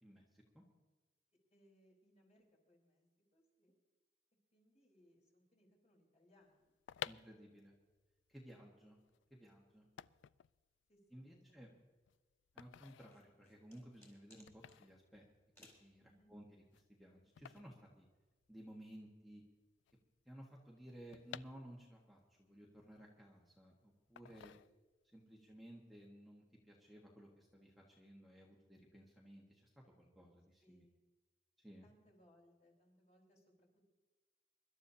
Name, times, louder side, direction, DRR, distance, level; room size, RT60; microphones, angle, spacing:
voice 1, 0.0-0.6 7.0-7.7 8.3-9.0 9.3-9.9 11.1-11.7 12.5-15.3 15.6-16.0 16.3-16.6 17.0-18.0 18.5-19.4 20.2-24.5 25.1-29.6 30.0-30.8 31.6-31.9, equal, ahead, -3 dB, 1.5 m, -57 dB
voice 2, 1.5-3.0 3.3-3.7 4.5-7.6 8.5-8.6 10.0-10.1 10.9-11.7 16.0-16.3 30.6-31.0 31.8-33.9, equal, 40° left, 0 dB, 4.1 m, -71 dB
sound 1, 6.6-18.8 19.0-19.1 19.3-22.2 22.6-23.6 24.2-25.2 25.5-25.8, left 10 dB, 80° left, 0.3 m, -54 dB
sound 2, 12.9-14.8 15.5-15.9, left 2 dB, 15° left, 3.6 m, -64 dB
24.5 x 12.0 x 2.8 m, 1.3 s
head